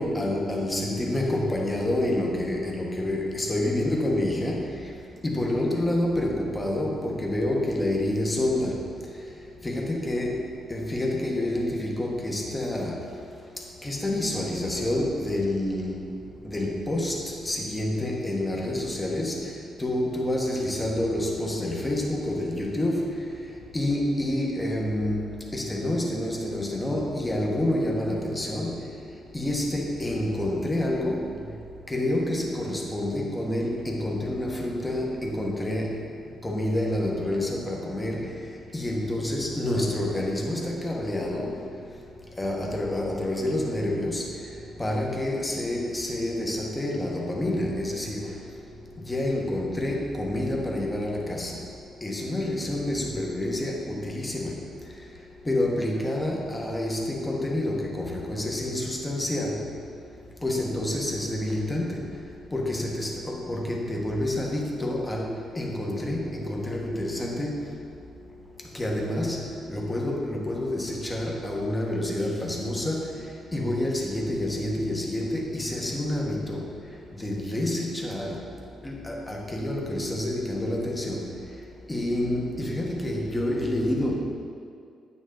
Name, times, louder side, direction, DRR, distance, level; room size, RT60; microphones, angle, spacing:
voice 1, 0.0-4.7 5.2-8.8 9.6-10.4 10.7-13.0 13.8-16.0 16.4-17.2 17.4-19.5 19.8-23.1 23.7-25.3 25.5-28.8 29.3-31.3 31.9-36.0 36.4-38.3 38.7-41.6 42.4-44.2 44.8-48.3 49.1-51.6 52.0-54.6 55.5-59.7 60.4-62.2 62.5-67.6 68.7-69.4 69.7-73.0 73.5-76.7 77.2-78.4 78.8-81.3 81.9-84.2, left 1 dB, 15° left, -1 dB, 1.3 m, -28 dB
9.0 x 6.2 x 3.8 m, 2.3 s
cardioid pair, 90°, 0 cm